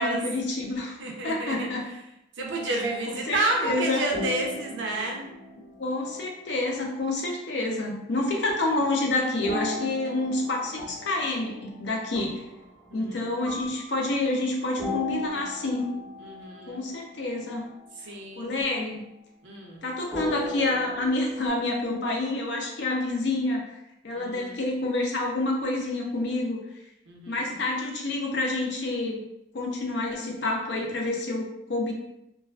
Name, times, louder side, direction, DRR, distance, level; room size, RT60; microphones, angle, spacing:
voice 1, 0.0-1.0 1.2-1.9 2.7-4.1 5.8-12.4 12.9-15.9 16.7-17.6 18.4-19.1 19.8-23.7 24.0-26.6 27.3-29.2 29.5-31.9, left 2 dB, 65° left, 0 dB, 0.5 m, -28 dB
voice 2, 1.0-1.7 2.4-5.2 12.9-13.2 16.2-16.8 18.1-18.6 19.4-19.9 24.2-24.6 27.1-27.6, right 2 dB, 75° right, 0 dB, 0.5 m, -30 dB
sound 1, 2.4-6.5 9.4-13.0 13.4-17.1 17.5-17.8 20.1-21.5, left 1 dB, ahead, 0.7 m, -37 dB
2.3 x 2.3 x 2.3 m, 0.85 s
head